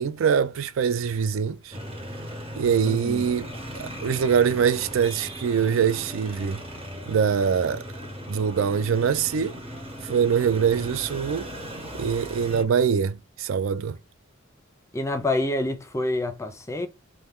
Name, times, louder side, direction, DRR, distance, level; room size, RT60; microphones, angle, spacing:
voice 1, 0.0-1.8 2.6-3.5 3.8-6.6 7.1-7.8 8.3-9.6 10.0-11.5 12.0-14.0, right 7 dB, 70° right, 0.4 m, -23 dB
sound 1, 1.7-12.6, equal, 30° right, 1.0 m, -38 dB
voice 2, 2.8-3.3 14.9-16.9, left 2 dB, 15° left, 0.5 m, -27 dB
4.3 x 2.1 x 3.5 m
head